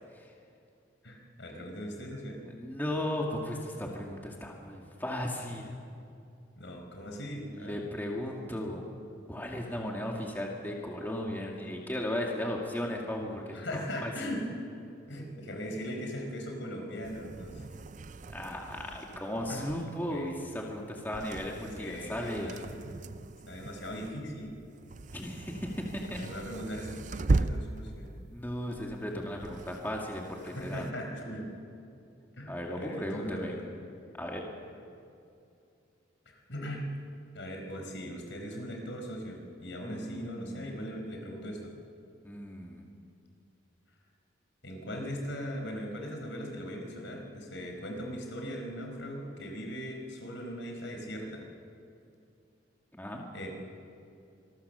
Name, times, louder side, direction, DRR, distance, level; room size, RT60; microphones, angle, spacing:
voice 1, 1.0-2.4 6.6-7.8 13.5-14.5 15.1-17.8 19.4-19.7 20.1-20.4 21.8-22.7 23.5-24.6 26.2-28.1 30.5-31.5 32.3-33.6 36.2-36.9 37.3-41.7 44.6-51.4 53.3-53.5, equal, 75° left, 2 dB, 4.8 m, -39 dB
voice 2, 2.5-5.7 7.5-8.8 9.3-14.3 18.3-22.5 25.1-26.2 27.3-27.4 28.3-30.8 32.5-33.5 34.2-34.5 39.8-40.6 42.2-42.9 52.9-53.2, left 1 dB, 10° left, -1 dB, 2.1 m, -36 dB
sound 1, 17.0-30.9, right 3 dB, 40° right, 0.5 m, -38 dB
26.0 x 21.0 x 6.8 m, 2.5 s
head